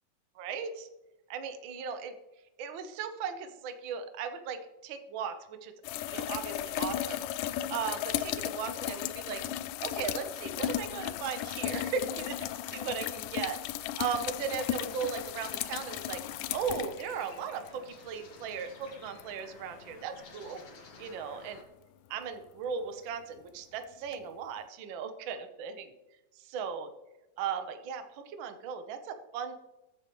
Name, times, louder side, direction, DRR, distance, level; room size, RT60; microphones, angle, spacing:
voice 1, 0.4-0.9 1.3-2.1 2.6-5.7 6.1-7.2 7.7-9.4 9.8-13.6 14.0-16.2 16.5-20.6 21.0-21.6 22.1-25.9 26.5-26.9 27.4-29.5, right 6 dB, 85° right, 7 dB, 1.0 m, -37 dB
sound 1, 5.8-17.7 19.2-19.3 24.1-24.2, left 12 dB, 90° left, 2.2 m, -35 dB
sound 2, 14.0-21.6, left 4 dB, 55° left, 2.5 m, -53 dB
21.5 x 8.1 x 3.1 m, 1.0 s
omnidirectional pair, 3.7 m